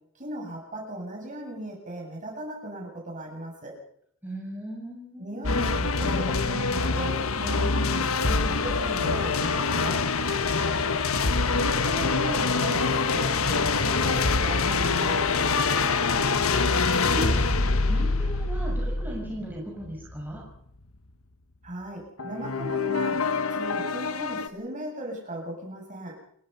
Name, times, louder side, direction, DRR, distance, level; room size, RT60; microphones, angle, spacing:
voice 1, 0.2-3.7 5.2-10.0 11.5-15.3 21.6-23.2 23.5-26.2, right 1 dB, 35° right, 0 dB, 7.9 m, -37 dB
voice 2, 4.2-5.6 17.0-17.4 17.9-20.4, right 1 dB, 10° right, -2 dB, 6.0 m, -36 dB
sound 1, 5.4-20.4 22.2-24.5, left 4 dB, 75° left, 1.4 m, -25 dB
29.0 x 17.0 x 5.7 m, 0.68 s
head